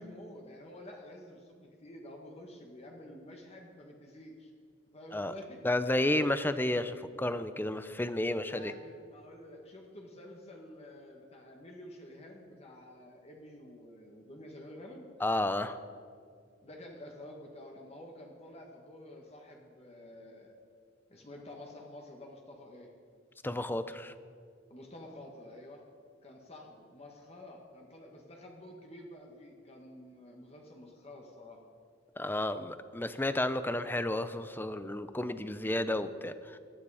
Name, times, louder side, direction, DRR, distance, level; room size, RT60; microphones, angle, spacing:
voice 1, 0.0-4.5 4.9-5.6 8.4-15.1 16.6-20.5 21.1-22.9 24.7-25.8 26.2-31.6, left 1 dB, 35° left, 1 dB, 1.5 m, -49 dB
voice 2, 5.6-8.7 15.2-15.8 23.4-24.1 32.2-36.6, left 1 dB, 10° left, 12 dB, 0.6 m, -32 dB
19.0 x 12.5 x 4.9 m, 2.1 s
head